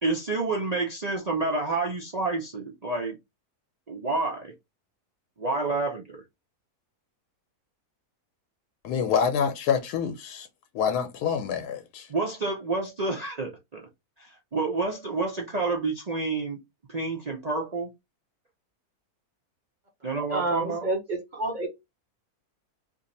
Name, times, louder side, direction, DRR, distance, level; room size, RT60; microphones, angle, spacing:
voice 1, 0.0-3.2 3.9-4.5 5.4-6.2 12.1-13.9 14.2-16.6 16.9-17.9 20.0-20.9, right 3 dB, 60° right, 0.4 m, -29 dB
voice 2, 8.8-10.5 10.7-12.1, left 7 dB, 85° left, 1.1 m, -26 dB
voice 3, 20.3-21.7, right 2 dB, 40° right, 0.8 m, -29 dB
2.7 x 2.6 x 4.0 m
omnidirectional pair, 1.6 m